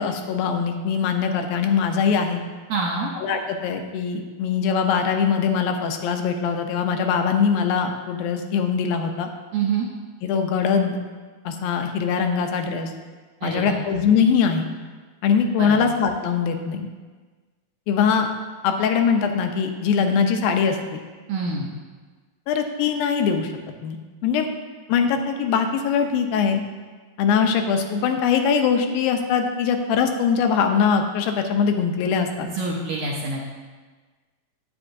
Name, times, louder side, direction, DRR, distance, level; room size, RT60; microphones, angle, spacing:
voice 1, 0.0-2.4 3.2-9.3 10.2-11.0 11.5-12.9 13.4-14.7 15.2-16.9 17.9-18.3 18.6-21.0 22.5-23.5 23.8-24.0 24.2-24.5 24.9-26.6 27.2-32.5, left 6 dB, 90° left, 5 dB, 2.5 m, -22 dB
voice 2, 2.7-3.1 9.5-9.9 13.4-13.8 15.6-15.8 21.3-21.8 32.4-33.4, right 4 dB, 75° right, -2 dB, 1.8 m, -26 dB
9.6 x 8.6 x 2.6 m, 1.4 s
omnidirectional pair, 4.1 m